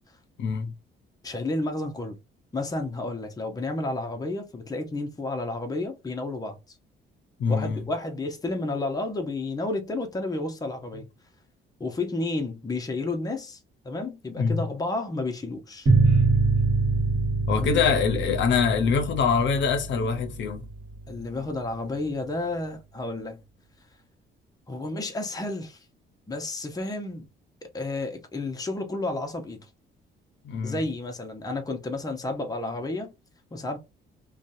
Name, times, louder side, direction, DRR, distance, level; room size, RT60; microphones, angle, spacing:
voice 1, 0.4-0.7 7.4-7.8 14.4-14.7 17.5-20.6 30.4-30.8, left 6 dB, 65° left, 0.7 m, -24 dB
voice 2, 1.2-2.2 2.5-6.8 7.5-11.1 11.8-13.6 13.8-15.9 17.6-17.8 21.1-23.4 24.7-25.8 26.3-27.3 27.7-29.7 30.6-33.1 33.5-33.8, left 2 dB, 20° left, 0.7 m, -31 dB
sound 1, 15.9-21.0, right 3 dB, 40° right, 1.5 m, -24 dB
2.7 x 2.3 x 2.6 m
cardioid pair, 90°, 20 cm